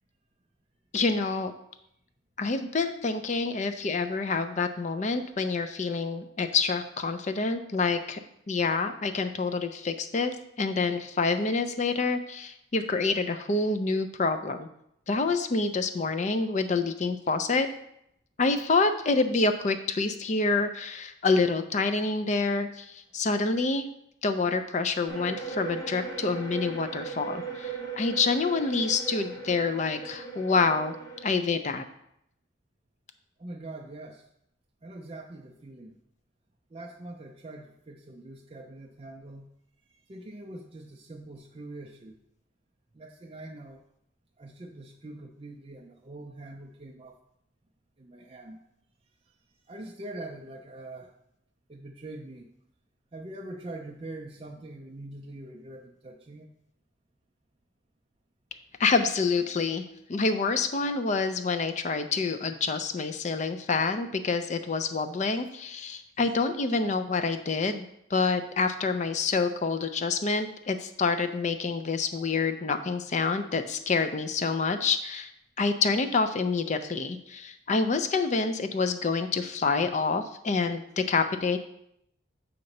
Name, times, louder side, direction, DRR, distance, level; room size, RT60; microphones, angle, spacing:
voice 1, 0.9-1.5 2.4-8.2 8.5-14.7 15.1-17.7 18.4-23.9 24.2-30.9 31.2-31.8 58.8-59.8 60.1-67.9 68.1-75.3 75.6-81.6, left 4 dB, 35° left, 9 dB, 0.4 m, -27 dB
sound 1, 25.1-31.3, right 5 dB, 15° left, 0.9 m, -38 dB
voice 2, 33.4-34.2 34.8-36.0 36.7-39.5 39.9-42.2 42.9-43.8 44.4-47.2 48.0-48.6 49.7-51.1 51.7-52.5 53.1-56.5 65.3-65.4, right 2 dB, 25° right, 0 dB, 0.4 m, -43 dB
7.5 x 2.9 x 5.2 m, 0.78 s
head